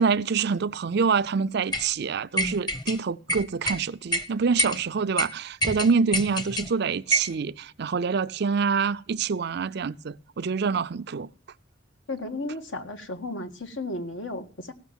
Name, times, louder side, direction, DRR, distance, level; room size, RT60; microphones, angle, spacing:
voice 1, 0.0-11.3, right 5 dB, 60° right, 0.5 m, -26 dB
sound 1, 1.7-1.9 2.4-3.0 3.3-3.8 4.1-4.2 4.6-4.8 5.2-5.3 5.6-6.7 7.1-7.3, equal, 25° left, 1.0 m, -26 dB
voice 2, 12.1-14.7, left 2 dB, 75° left, 1.7 m, -34 dB
16.5 x 6.4 x 7.2 m
head